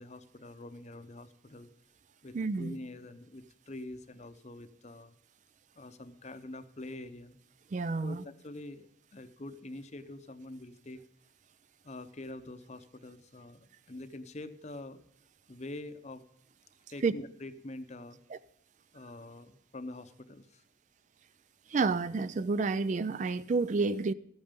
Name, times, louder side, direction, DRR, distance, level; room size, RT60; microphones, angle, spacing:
voice 1, 0.0-1.7 2.2-5.1 5.7-7.4 8.0-11.0 11.8-15.0 15.5-16.2 16.9-18.2 18.9-20.6, left 2 dB, 35° left, 0.7 m, -45 dB
voice 2, 2.3-2.8 7.7-8.2 17.0-17.1 18.3-18.4 21.7-24.1, right 4 dB, 40° right, 0.3 m, -30 dB
14.0 x 9.0 x 5.2 m
head